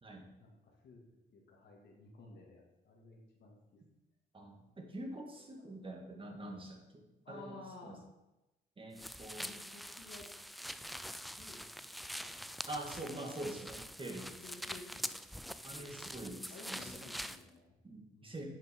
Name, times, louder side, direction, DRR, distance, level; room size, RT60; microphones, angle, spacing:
voice 1, 0.4-1.0 1.3-3.8 5.6-5.7 7.2-8.0 9.4-10.3 10.8-11.8 12.2-12.7 14.3-15.2 15.7-15.9 16.4-17.7 18.1-18.5, left 3 dB, 65° left, -2 dB, 2.3 m, -54 dB
voice 2, 4.3-8.0 8.8-9.5 12.7-14.7 15.6-17.1 17.8-18.5, right 1 dB, 25° right, 1 dB, 2.2 m, -45 dB
sound 1, 9.0-17.4, equal, ahead, 0.3 m, -45 dB
9.3 x 5.9 x 5.4 m, 0.97 s
cardioid pair, 90°, 20 cm